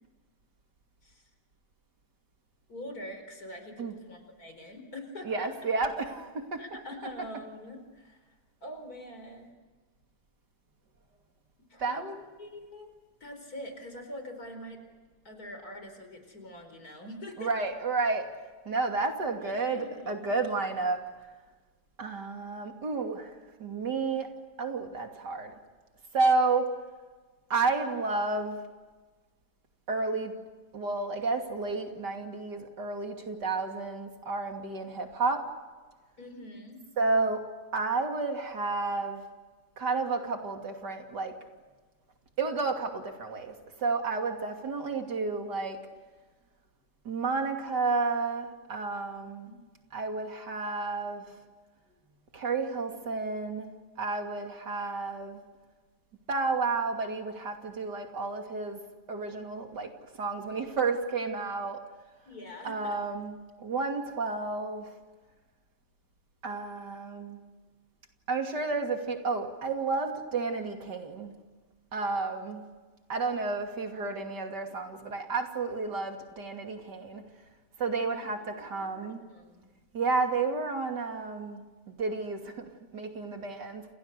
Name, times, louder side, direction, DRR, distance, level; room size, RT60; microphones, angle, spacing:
voice 1, 2.7-5.5 6.6-8.2 8.6-9.5 11.7-12.9 13.2-14.8 15.2-17.7 19.2-20.3 36.2-36.8 62.2-63.0 78.0-79.7, left 1 dB, 60° left, 6 dB, 5.1 m, -44 dB
voice 2, 5.2-6.6 11.8-12.2 17.4-18.3 18.6-21.0 22.0-24.3 24.6-25.5 26.1-26.7 27.5-28.6 29.9-30.3 30.7-35.5 37.0-37.5 37.7-39.3 39.8-41.3 42.4-45.8 47.0-49.5 49.9-51.2 52.3-53.7 54.0-55.4 56.3-58.8 59.1-61.9 62.6-64.9 66.4-67.4 68.3-71.3 71.9-72.6 73.1-77.2 77.8-79.2 79.9-81.6 81.9-83.9, right 3 dB, 75° right, 4 dB, 3.4 m, -31 dB
29.5 x 29.0 x 6.8 m, 1.3 s
omnidirectional pair, 1.8 m